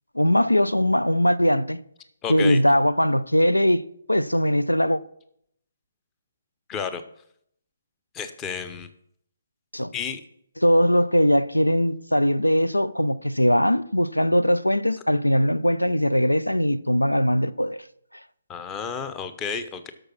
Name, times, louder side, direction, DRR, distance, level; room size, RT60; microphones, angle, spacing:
voice 1, 0.1-1.8 2.3-5.0 9.7-9.9 10.6-17.8, equal, 85° left, 0.5 m, -20 dB
voice 2, 2.2-2.6 6.7-7.0 8.1-8.9 9.9-10.2 18.5-19.9, left 6 dB, 15° left, 0.8 m, -31 dB
11.5 x 6.5 x 6.1 m
figure-of-eight pair, 140°, 0 cm